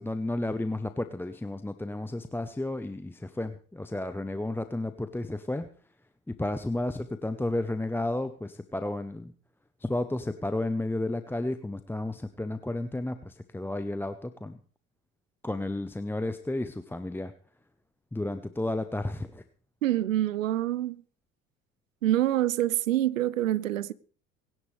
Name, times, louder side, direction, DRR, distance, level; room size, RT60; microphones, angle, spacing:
voice 1, 0.0-5.7 6.3-9.3 9.8-14.6 15.4-17.3 18.1-19.4, left 2 dB, 5° left, 0.8 m, -32 dB
voice 2, 19.8-21.0 22.0-23.9, right 13 dB, 85° right, 0.7 m, -26 dB
23.5 x 10.5 x 3.3 m
hypercardioid pair, 70°, 38 cm